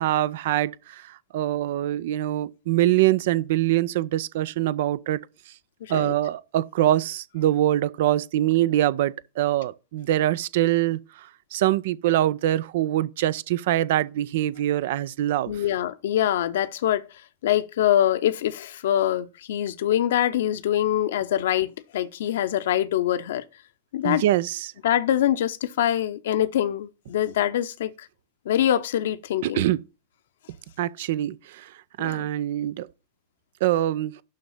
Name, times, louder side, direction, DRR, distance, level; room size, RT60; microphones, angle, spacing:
voice 1, 0.0-5.2 5.9-15.6 24.0-24.7 29.4-29.8 30.8-31.7 32.0-32.9 33.6-34.1, right 13 dB, 55° right, 0.5 m, -24 dB
voice 2, 5.8-6.1 15.5-17.0 17.4-23.4 23.9-24.2 24.8-28.1 28.5-29.6 32.0-32.3, left 11 dB, 60° left, 0.8 m, -24 dB
11.5 x 3.9 x 7.2 m
figure-of-eight pair, 90°, 0 cm